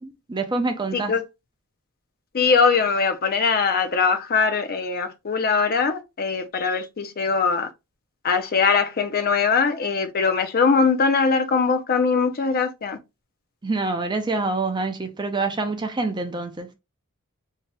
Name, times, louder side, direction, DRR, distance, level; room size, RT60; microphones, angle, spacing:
voice 1, 0.0-1.2 13.6-16.7, right 3 dB, 20° right, 0.5 m, -26 dB
voice 2, 2.3-7.7 8.2-13.0, left 5 dB, 45° left, 0.5 m, -21 dB
2.8 x 2.8 x 3.3 m
head